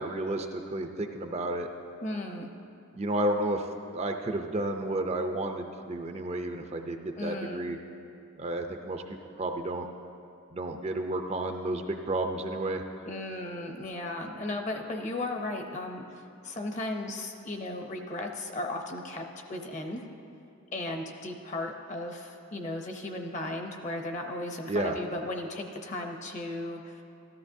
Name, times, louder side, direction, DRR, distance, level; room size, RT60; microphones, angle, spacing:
voice 1, 0.0-1.7 2.9-3.6 3.9-7.8 8.4-9.9 10.5-12.8 24.7-25.0, right 1 dB, 30° right, 5 dB, 0.4 m, -31 dB
voice 2, 2.0-2.5 7.2-7.7 13.1-20.1 20.7-27.0, left 2 dB, 35° left, 3 dB, 0.7 m, -36 dB
13.5 x 13.0 x 2.7 m, 2.7 s
head